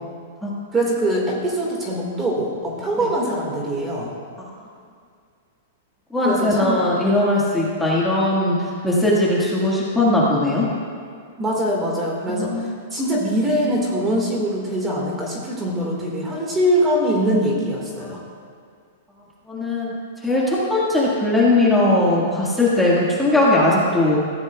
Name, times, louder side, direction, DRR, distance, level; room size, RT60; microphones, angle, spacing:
voice 1, 0.7-4.1 6.2-6.8 11.4-18.2, equal, 15° right, -2 dB, 1.8 m, -23 dB
voice 2, 6.1-8.6 8.8-10.7 12.3-12.6 18.0-18.2 19.5-19.9 20.2-24.2, left 2 dB, 5° left, -6 dB, 1.7 m, -19 dB
19.5 x 14.5 x 2.3 m, 2.2 s
supercardioid pair, 160°, 0 cm